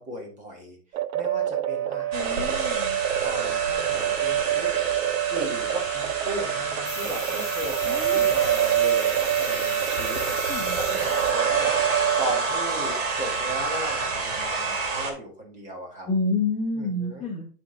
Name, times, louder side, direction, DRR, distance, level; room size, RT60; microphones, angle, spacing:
voice 1, 0.0-2.7 3.2-4.7 5.3-10.4 10.7-11.7 12.2-16.1 16.7-17.3, equal, 15° right, 0 dB, 1.8 m, -36 dB
sound 1, 0.9-12.4, right 12 dB, 75° right, 0.6 m, -26 dB
voice 2, 2.1-3.0 7.9-8.3 10.4-10.8 16.0-17.5, left 3 dB, 15° left, -3 dB, 1.3 m, -29 dB
sound 2, 2.1-15.1, right 3 dB, 60° right, 2.4 m, -29 dB
sound 3, 6.8-11.4 11.7-12.0, left 10 dB, 70° left, 1.1 m, -39 dB
9.8 x 3.8 x 3.8 m, 0.42 s
hypercardioid pair, 145°, 44 cm